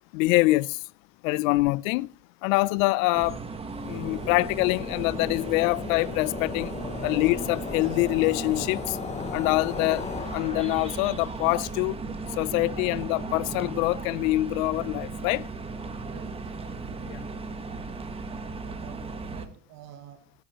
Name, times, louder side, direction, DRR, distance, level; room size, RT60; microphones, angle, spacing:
voice 1, 0.1-0.8 1.2-2.1 2.4-3.4 3.8-6.7 7.0-9.0 9.3-12.0 12.4-15.4 17.1-17.2, left 21 dB, 65° left, 0.5 m, -25 dB
sound 1, 3.1-19.5, right 4 dB, 15° right, 1.0 m, -36 dB
sound 2, 3.7-11.1, left 7 dB, 15° left, 0.6 m, -37 dB
voice 2, 16.0-16.5 18.6-20.3, right 10 dB, 35° right, 1.0 m, -48 dB
16.5 x 11.5 x 2.9 m
supercardioid pair, 145°, 44 cm